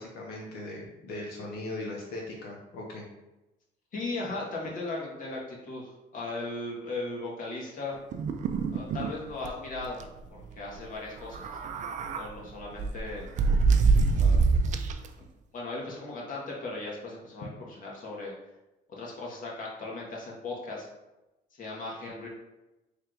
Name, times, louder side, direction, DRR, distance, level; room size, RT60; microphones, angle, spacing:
voice 1, 0.0-3.0, left 2 dB, 75° left, -2 dB, 0.8 m, -39 dB
voice 2, 3.9-7.9 8.7-10.0 10.5-11.5 12.1-13.3 14.1-14.4 15.2-15.3 15.5-18.3 19.0-20.9 21.5-22.3, left 2 dB, 55° left, -3 dB, 1.3 m, -37 dB
sound 1, 8.1-9.1 9.4-9.5 9.8-10.0 11.2-12.3 12.8-15.1, right 4 dB, 45° right, 0.4 m, -25 dB
3.3 x 2.5 x 4.5 m, 0.99 s
cardioid pair, 110°, 17 cm